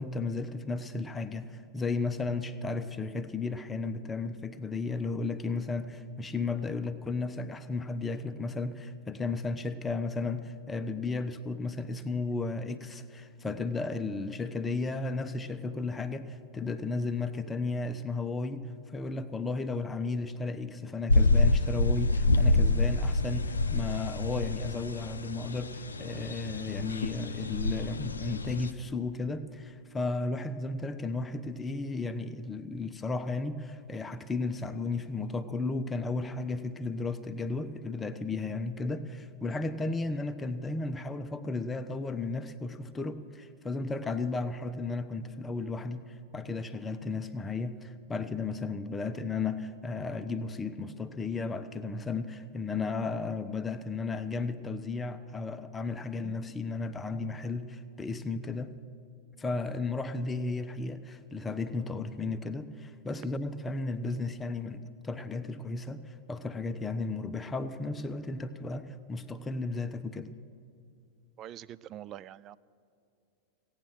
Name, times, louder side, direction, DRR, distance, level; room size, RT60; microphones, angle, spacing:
voice 1, 0.0-58.7 59.4-70.3, left 3 dB, 15° left, 9 dB, 0.7 m, -34 dB
sound 1, 21.1-28.7, left 2 dB, 75° left, 0.5 m, -27 dB
voice 2, 71.4-72.6, right 11 dB, 35° right, 18 dB, 0.3 m, -44 dB
16.5 x 9.0 x 6.4 m, 2.6 s
figure-of-eight pair, 90°, 0 cm